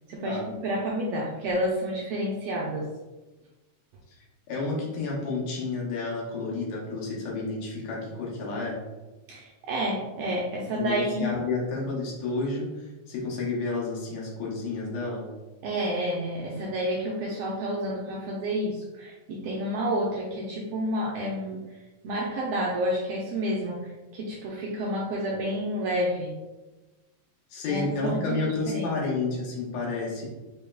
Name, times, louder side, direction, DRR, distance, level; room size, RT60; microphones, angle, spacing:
voice 1, 0.1-2.9 9.3-11.3 15.6-21.6 22.0-26.3 27.7-28.9, equal, 80° right, -3 dB, 1.5 m, -30 dB
voice 2, 4.5-8.8 10.7-15.2 27.5-30.3, left 3 dB, 75° left, -4 dB, 2.3 m, -30 dB
5.1 x 3.4 x 2.2 m, 1.1 s
omnidirectional pair, 3.3 m